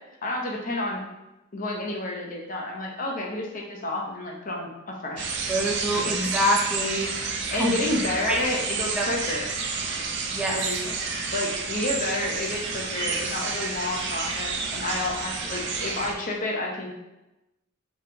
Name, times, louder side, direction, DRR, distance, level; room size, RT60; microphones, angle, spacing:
voice 1, 0.2-1.0 1.5-5.3 5.9-6.2 7.5-9.5 10.5-11.0 11.3-16.9, left 2 dB, 40° left, -1 dB, 0.7 m, -30 dB
sound 1, 5.2-16.1, right 4 dB, 55° right, 0.5 m, -30 dB
voice 2, 5.5-7.1 7.6-7.7 8.3-8.4 8.9-9.1 10.3-10.6, equal, 5° right, -3 dB, 0.5 m, -25 dB
4.2 x 3.4 x 2.7 m, 0.97 s
head